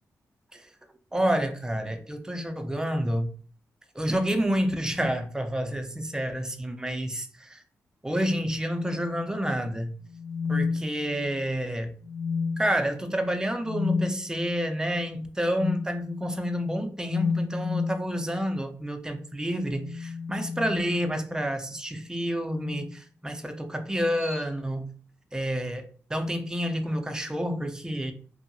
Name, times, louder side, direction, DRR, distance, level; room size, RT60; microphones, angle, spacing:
voice 1, 1.1-3.3 4.0-7.6 8.0-9.9 10.5-11.9 12.6-24.9 25.3-25.8 26.1-28.1, equal, 10° right, 6 dB, 0.5 m, -29 dB
sound 1, 10.1-11.4 12.0-12.8 13.6-14.1 15.5-15.9 17.0-18.1 19.6-21.4 22.5-22.9 24.2-24.4, left 5 dB, 40° left, 0.4 m, -31 dB
2.7 x 2.7 x 2.6 m, 0.42 s
cardioid pair, 60°, 6 cm